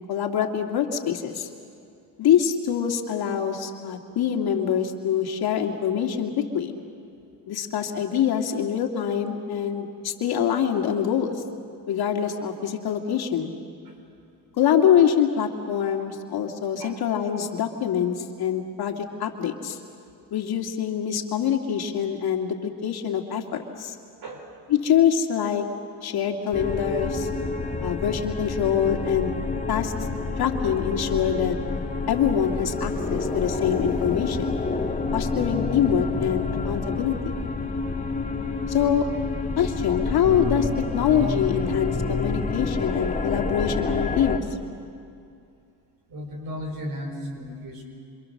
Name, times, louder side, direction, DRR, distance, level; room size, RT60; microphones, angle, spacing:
voice 1, 0.0-1.5 2.2-6.7 7.5-11.4 11.9-13.5 14.6-19.8 20.3-24.0 24.7-25.6 26.0-27.3 27.8-29.3 29.7-29.9 30.4-31.6 32.1-34.6 35.1-37.3 38.7-39.1 39.6-44.4, left 8 dB, 60° left, 3 dB, 2.5 m, -24 dB
voice 2, 24.2-24.5 46.1-47.8, equal, 55° right, 3 dB, 5.1 m, -35 dB
sound 1, 26.5-44.4, left 3 dB, 20° left, 1.9 m, -28 dB
27.0 x 26.5 x 6.7 m, 2.5 s
cardioid pair, 100°, 42 cm